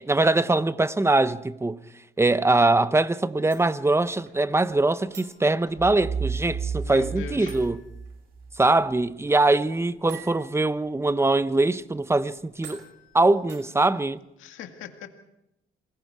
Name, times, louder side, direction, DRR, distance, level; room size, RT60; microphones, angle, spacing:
voice 1, 0.0-1.8 2.2-7.8 8.6-12.8 13.1-14.2, right 2 dB, 15° right, 0.8 m, -22 dB
sound 1, 3.5-14.1, right 6 dB, 65° right, 5.7 m, -51 dB
sound 2, 5.8-8.6, right 5 dB, 45° right, 2.6 m, -32 dB
voice 2, 6.8-7.6 14.4-15.1, left 8 dB, 85° left, 2.0 m, -39 dB
27.5 x 20.5 x 4.8 m
cardioid pair, 90°, 20 cm